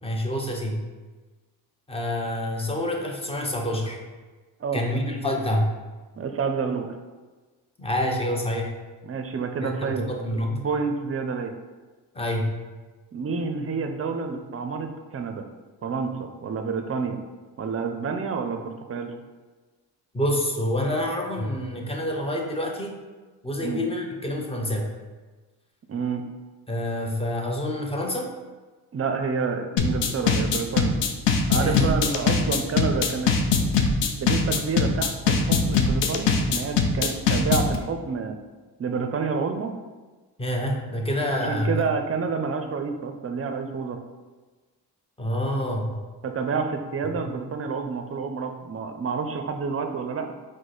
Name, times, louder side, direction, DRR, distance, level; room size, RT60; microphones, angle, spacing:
voice 1, 0.0-0.9 1.9-4.0 4.7-5.8 7.8-8.7 9.6-10.6 12.1-12.6 20.1-23.0 23.4-24.9 26.7-28.3 31.5-31.9 40.4-41.9 45.2-46.0 47.0-47.3, left 1 dB, 15° left, 1 dB, 0.7 m, -27 dB
voice 2, 6.2-6.9 9.0-10.1 10.5-11.5 13.1-15.4 15.8-17.2 17.6-19.1 23.6-23.8 25.9-26.2 28.9-30.9 31.5-33.3 34.2-38.4 38.8-39.7 41.3-44.0 46.2-50.3, right 5 dB, 35° right, 6 dB, 0.5 m, -29 dB
sound 1, 29.8-37.8, left 5 dB, 75° left, 0.6 m, -21 dB
4.7 x 2.2 x 3.9 m, 1.3 s
cardioid pair, 80°, 43 cm